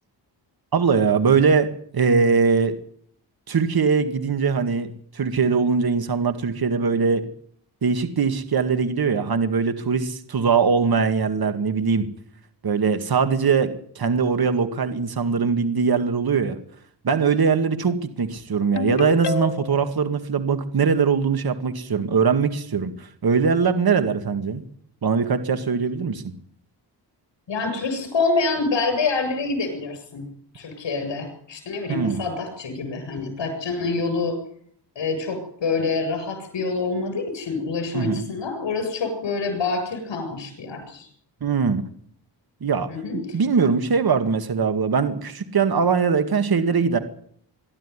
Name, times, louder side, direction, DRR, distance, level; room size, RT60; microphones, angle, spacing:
voice 1, 0.7-2.8 3.5-7.3 7.8-12.1 12.6-16.6 17.0-24.6 25.0-26.3 31.9-32.2 37.9-38.3 41.4-41.8 42.6-42.9 43.3-47.0, right 5 dB, 55° right, 8 dB, 2.0 m, -21 dB
Ringtone, 18.8-19.9, left 8 dB, 65° left, 1.1 m, -28 dB
voice 2, 27.5-30.3 30.5-34.4 35.0-41.1 42.9-43.4, left 4 dB, 85° left, 6 dB, 7.7 m, -26 dB
23.0 x 13.0 x 9.8 m, 0.63 s
wide cardioid pair, 110°, 43 cm